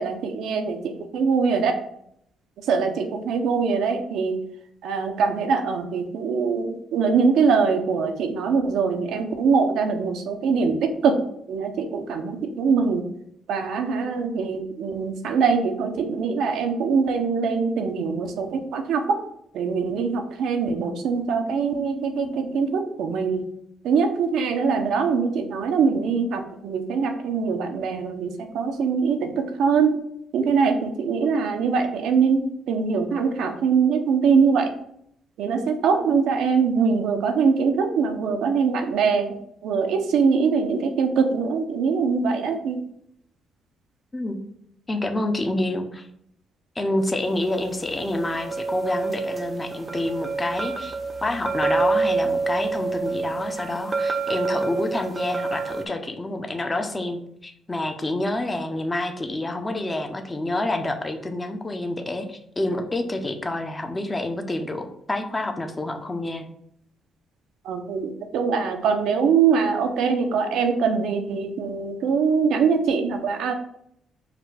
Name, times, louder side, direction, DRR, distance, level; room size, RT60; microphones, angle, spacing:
voice 1, 0.0-1.7 2.6-4.4 4.8-11.2 11.5-13.0 13.5-19.2 19.5-23.4 23.8-30.0 30.3-34.7 35.4-42.8 67.6-73.5, right 5 dB, 80° right, 5 dB, 0.7 m, -23 dB
voice 2, 44.9-46.1 46.8-66.5, left 2 dB, 20° left, 5 dB, 0.6 m, -28 dB
sound 1, 47.5-55.9, right 4 dB, 30° right, 0.5 m, -27 dB
4.9 x 2.2 x 4.8 m, 0.72 s
cardioid pair, 90°, 0 cm